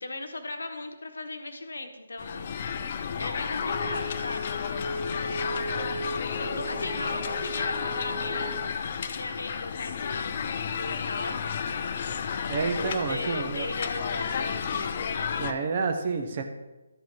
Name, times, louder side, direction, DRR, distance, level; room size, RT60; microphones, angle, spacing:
voice 1, 0.0-2.6 3.2-5.0 6.2-8.6 8.9-10.4 10.7-11.4 12.6-15.0, left 2 dB, 75° left, 6 dB, 1.2 m, -37 dB
sound 1, 2.2-15.5, left 6 dB, 40° left, 0.5 m, -32 dB
Bowed string instrument, 3.5-8.6, right 1 dB, 65° right, 2.2 m, -37 dB
voice 2, 12.5-13.7 15.4-16.4, right 4 dB, 40° right, 6 dB, 1.0 m, -29 dB
12.0 x 5.1 x 4.6 m, 1.1 s
figure-of-eight pair, 150°, 0 cm